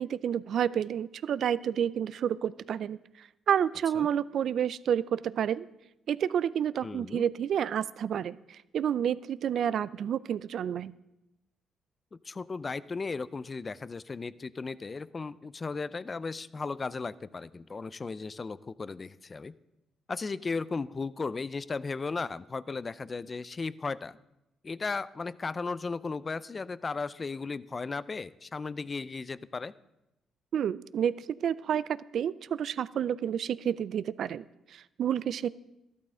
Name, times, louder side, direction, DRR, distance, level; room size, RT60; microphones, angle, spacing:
voice 1, 0.0-5.7 6.1-10.9 30.5-35.5, right 9 dB, 65° right, 18 dB, 0.4 m, -30 dB
voice 2, 6.8-7.2 12.2-19.5 20.1-24.2 24.6-29.7, left 4 dB, 30° left, 17 dB, 0.4 m, -36 dB
13.5 x 12.0 x 3.8 m, 0.91 s
cardioid pair, 90°, 0 cm